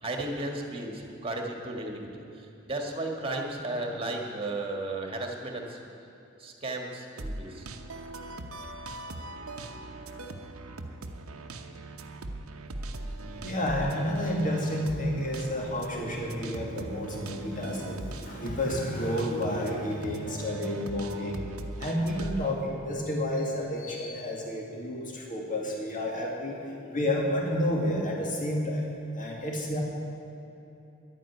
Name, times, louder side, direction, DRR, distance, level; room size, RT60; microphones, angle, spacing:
voice 1, 0.0-5.8 6.4-7.7 9.7-9.8, right 2 dB, 25° right, 2 dB, 1.9 m, -34 dB
sound 1, 7.2-22.5, right 2 dB, 85° right, 0.9 m, -40 dB
voice 2, 13.4-21.4 21.8-28.8 29.1-29.8, left 1 dB, 40° left, -1 dB, 2.2 m, -30 dB
11.5 x 9.3 x 9.5 m, 2.9 s
head